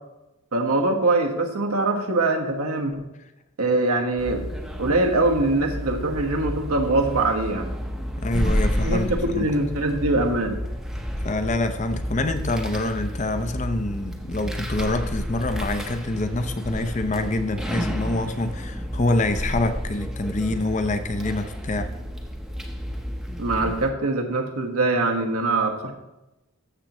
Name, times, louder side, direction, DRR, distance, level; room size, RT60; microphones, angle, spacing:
voice 1, 0.5-3.0 3.6-4.4 4.8-7.7 8.8-10.6 23.4-25.9, right 2 dB, 90° right, 2 dB, 1.4 m, -23 dB
sound 1, 4.2-23.9, equal, ahead, 0.7 m, -31 dB
voice 2, 8.2-9.1 9.3-9.5 11.2-21.9, left 2 dB, 35° left, 8 dB, 0.6 m, -26 dB
13.5 x 7.3 x 3.0 m, 0.95 s
head